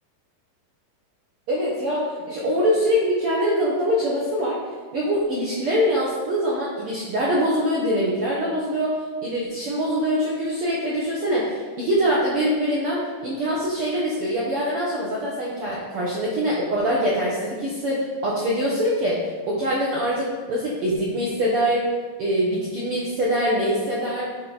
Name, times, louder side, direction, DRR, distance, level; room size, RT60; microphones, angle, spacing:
voice 1, 1.5-4.6 4.9-21.9 22.2-24.3, equal, 75° right, -5 dB, 1.3 m, -24 dB
9.5 x 4.2 x 3.9 m, 1.5 s
omnidirectional pair, 3.9 m